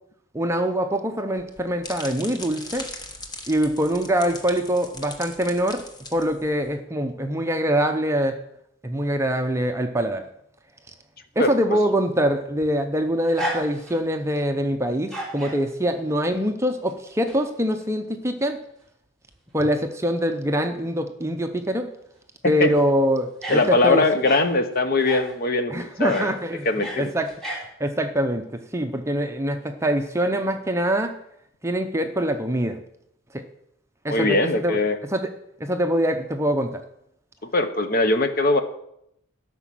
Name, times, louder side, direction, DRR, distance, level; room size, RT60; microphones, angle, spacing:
voice 1, 0.3-2.9 3.5-5.9 6.1-8.4 8.8-10.2 11.4-18.6 19.5-21.9 22.4-24.2 25.7-27.3 27.8-31.2 31.6-32.8 33.3-33.4 34.0-34.8 35.0-35.3 35.6-36.8, equal, 15° right, 6 dB, 0.7 m, -24 dB
pouring soda, 1.3-6.7, left 2 dB, 20° left, 1.1 m, -39 dB
voice 2, 11.4-11.8 22.6-22.7 23.5-26.3 26.6-27.1 34.1-35.0 37.4-38.6, left 2 dB, 45° left, 9 dB, 0.9 m, -21 dB
sound 1, 12.5-14.2 14.9-15.6 16.9-17.4 17.8-17.9 19.3-19.4 19.6-19.7 22.6-22.8 23.4-24.5 25.0-25.4 26.1-26.3 26.6-27.6, right 1 dB, ahead, 2.7 m, -34 dB
12.5 x 6.1 x 7.6 m, 0.77 s
head